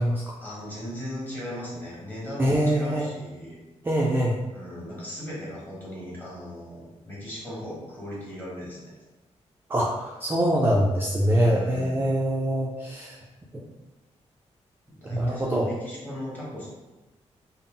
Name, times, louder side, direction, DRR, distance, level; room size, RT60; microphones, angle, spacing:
voice 1, 0.4-3.6 4.5-8.9 11.2-12.1 13.0-13.2 14.9-16.7, equal, 15° left, -6 dB, 1.4 m, -37 dB
voice 2, 2.4-3.1 3.8-4.4 9.7-13.2 15.1-15.7, equal, 20° right, -3 dB, 0.4 m, -24 dB
3.8 x 2.0 x 3.7 m, 1.1 s
wide cardioid pair, 130°, 12 cm